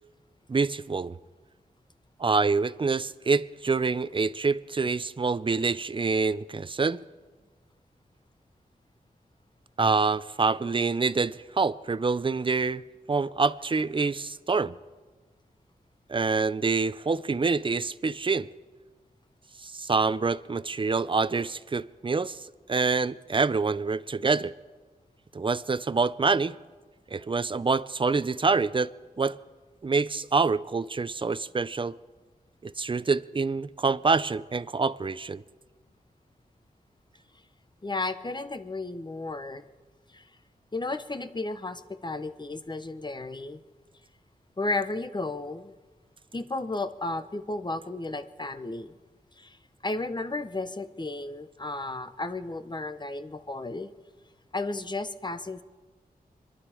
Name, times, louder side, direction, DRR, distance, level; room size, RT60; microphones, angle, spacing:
voice 1, 0.5-1.2 2.2-7.0 9.8-12.8 13.1-14.7 16.1-18.5 19.6-22.4 22.7-24.5 25.3-26.6 27.1-28.9 29.2-29.4 29.8-31.9 32.6-35.4, right 4 dB, 30° right, 0.5 m, -26 dB
voice 2, 37.8-39.6 40.1-40.2 40.7-43.6 44.6-45.7 46.3-48.9 49.4-49.6 49.8-53.9 54.5-55.6, left 2 dB, 30° left, 0.8 m, -33 dB
26.0 x 11.0 x 4.9 m
wide cardioid pair, 80°, 16 cm